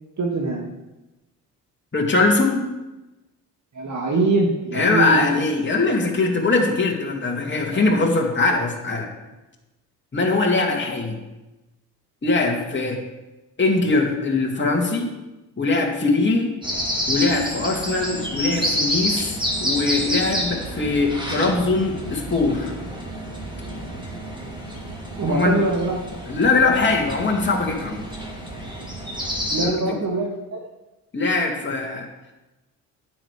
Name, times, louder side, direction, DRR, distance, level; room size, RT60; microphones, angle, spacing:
voice 1, 0.2-0.7 3.7-5.4 7.6-7.7 25.2-26.0 29.5-30.6, right 3 dB, 40° right, -2 dB, 2.1 m, -23 dB
voice 2, 1.9-2.6 4.7-9.1 10.1-11.2 12.2-13.0 13.6-15.1 15.6-16.5 17.1-19.4 19.6-22.7 25.3-25.6 26.3-28.0 29.6-29.9 31.1-32.1, left 3 dB, 25° left, -1 dB, 2.5 m, -21 dB
sound 1, 16.6-29.7, equal, 10° right, 4.1 m, -29 dB
9.8 x 7.8 x 5.1 m, 1.0 s
supercardioid pair, 60°, 42 cm